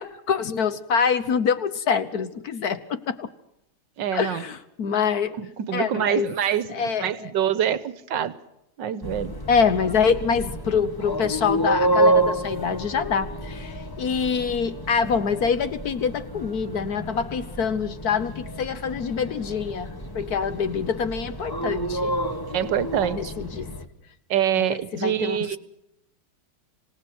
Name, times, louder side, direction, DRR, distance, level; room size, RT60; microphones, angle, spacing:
voice 1, 0.0-3.3 4.1-5.4 5.7-6.3 6.7-7.3 9.5-22.2 23.2-23.7 24.6-25.4, left 6 dB, 55° left, 13 dB, 1.2 m, -25 dB
voice 2, 4.0-4.5 5.4-8.3 8.8-9.3 22.5-23.3 24.3-25.6, right 10 dB, 60° right, 15 dB, 1.5 m, -25 dB
sound 1, 9.0-23.9, right 1 dB, 15° left, 1.1 m, -29 dB
26.5 x 18.5 x 6.1 m, 0.82 s
omnidirectional pair, 2.4 m